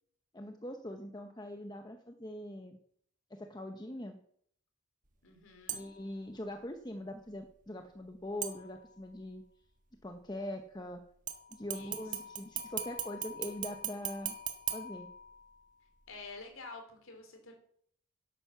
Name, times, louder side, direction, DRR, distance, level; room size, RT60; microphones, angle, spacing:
voice 1, 0.3-2.8 3.3-4.2 5.7-9.4 10.0-11.0 11.5-14.4 14.7-15.1, left 1 dB, 20° left, 5 dB, 0.9 m, -42 dB
voice 2, 5.2-5.9 11.7-12.0 16.1-17.5, left 3 dB, 70° left, 4 dB, 3.7 m, -49 dB
sound 1, 5.7-6.1 8.4-9.1 11.3-15.7 16.1-16.2, right 7 dB, 35° right, 1.4 m, -40 dB
11.5 x 9.3 x 7.1 m, 0.65 s
head